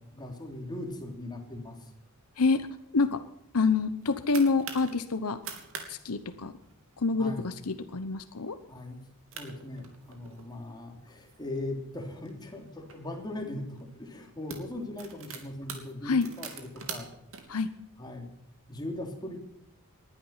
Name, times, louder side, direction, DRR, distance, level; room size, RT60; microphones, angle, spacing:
voice 1, 0.0-1.9 7.2-7.5 8.7-9.1 9.3-17.1 18.0-18.3 18.7-19.4, left 1 dB, 20° left, 2 dB, 3.2 m, -39 dB
voice 2, 2.4-2.7 2.9-3.2 3.5-5.4 5.9-6.5 7.0-8.6 16.0-16.3 17.5-17.7, left 4 dB, 80° left, 10 dB, 1.0 m, -27 dB
sound 1, 3.8-4.9 5.3-5.9 6.1-6.2 6.6-6.9 7.5-7.7 8.2-8.3 9.0-9.1 9.3-10.5 11.1-13.0 13.7-13.9 14.2-17.4, right 6 dB, 65° right, 3.0 m, -43 dB
20.0 x 11.5 x 5.8 m, 0.81 s
head